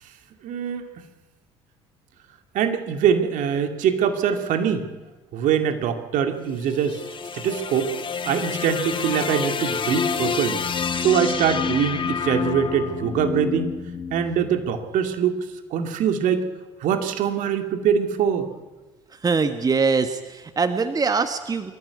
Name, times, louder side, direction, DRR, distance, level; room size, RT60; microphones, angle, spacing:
voice 1, 0.4-0.9 2.5-4.9 5.3-7.0 7.3-7.9 8.3-10.6 11.0-13.8 14.1-15.4 15.7-16.4 16.8-18.5, right 8 dB, 55° right, 6 dB, 2.3 m, -23 dB
sound 1, 6.4-14.8, left 6 dB, 30° left, 1.5 m, -28 dB
voice 2, 19.2-21.7, right 4 dB, 25° right, 9 dB, 1.4 m, -23 dB
24.5 x 14.0 x 9.4 m, 1.3 s
figure-of-eight pair, 55°, 16 cm